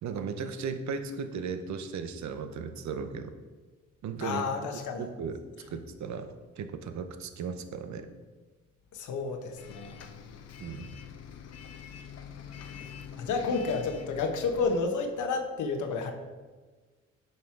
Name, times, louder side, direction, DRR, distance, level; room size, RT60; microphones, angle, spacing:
voice 1, 0.0-3.3 4.0-4.5 5.0-5.4 5.7-8.1 10.6-10.9, right 5 dB, 65° right, 9 dB, 0.9 m, -36 dB
voice 2, 4.2-5.1 8.9-10.0 13.1-16.1, left 4 dB, 80° left, 5 dB, 1.2 m, -31 dB
Bus, 9.6-14.8, left 8 dB, 55° left, 0.8 m, -45 dB
9.1 x 5.5 x 4.6 m, 1.4 s
cardioid pair, 90°, 30 cm